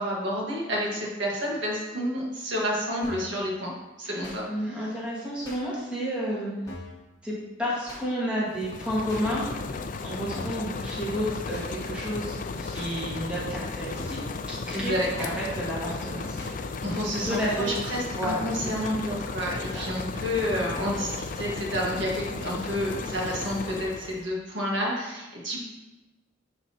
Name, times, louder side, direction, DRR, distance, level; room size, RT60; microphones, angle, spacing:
voice 1, 0.0-3.7 4.0-4.5 14.7-15.3 16.8-25.6, equal, 70° right, -3 dB, 1.6 m, -30 dB
sound 1, 3.0-3.4 4.2-4.4 5.4-5.6 6.7-7.0 7.9-8.0 9.1-9.3 10.3-10.7 11.5-11.7 12.7-12.9 13.9-14.3 15.2-15.3 16.4-16.6, left 2 dB, 20° left, 1.3 m, -42 dB
voice 2, 4.5-6.5 7.2-7.3 7.6-9.5 10.0-14.2 14.5-16.4 16.8-17.7 18.2-18.9 19.7-19.8, equal, 5° right, -8 dB, 1.7 m, -31 dB
sound 2, 8.5-24.3, left 4 dB, 45° left, 0.4 m, -35 dB
10.5 x 4.0 x 2.9 m, 1.1 s
head